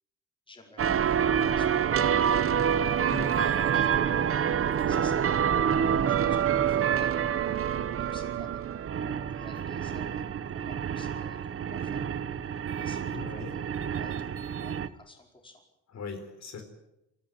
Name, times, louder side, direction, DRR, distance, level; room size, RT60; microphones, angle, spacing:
voice 1, 0.5-2.1 4.9-7.6 8.0-8.6 9.0-10.3 10.5-12.2 12.8-15.6, left 2 dB, 15° left, 2 dB, 4.9 m, -53 dB
sound 1, 0.8-14.9, right 8 dB, 45° right, 1.1 m, -27 dB
voice 2, 2.8-3.5 13.1-13.5 15.9-16.6, left 4 dB, 60° left, 6 dB, 4.0 m, -39 dB
28.0 x 14.5 x 9.0 m, 0.87 s
cardioid pair, 150°, 31 cm